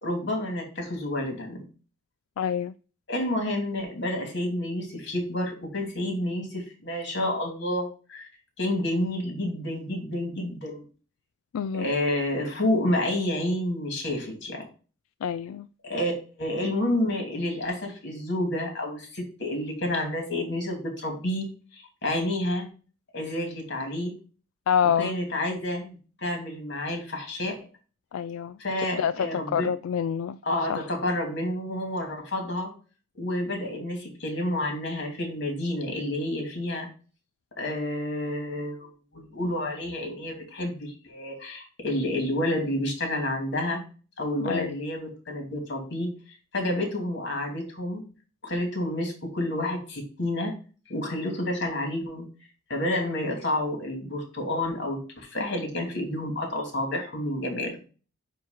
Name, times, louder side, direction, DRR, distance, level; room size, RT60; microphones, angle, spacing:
voice 1, 0.0-1.6 3.1-8.3 8.6-10.8 11.7-14.7 15.8-16.1 16.4-21.5 21.7-22.7 23.1-24.2 25.0-27.7 28.6-29.7 30.4-32.7 33.1-36.9 37.6-43.8 44.2-46.2 46.5-48.0 48.4-50.5 50.9-52.2 52.7-57.8, left 1 dB, 55° left, 2.8 m, -29 dB
voice 2, 2.4-2.7 11.5-11.9 15.2-15.7 24.7-25.2 28.1-28.6 29.0-30.4 30.7-30.8 44.4-44.7, left 8 dB, 85° left, 0.3 m, -27 dB
9.2 x 3.1 x 5.7 m
head